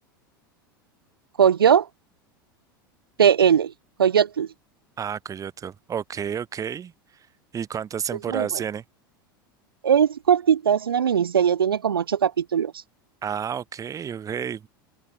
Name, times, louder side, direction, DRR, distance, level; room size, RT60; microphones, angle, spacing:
voice 1, 1.4-1.9 3.2-3.7 4.0-4.5 8.3-8.5 9.8-12.7, right 8 dB, 85° right, 1.4 m, -19 dB
voice 2, 5.0-6.9 7.5-8.8 13.2-14.7, right 8 dB, 30° right, 2.8 m, -30 dB
open air
hypercardioid pair, 90°, 12 cm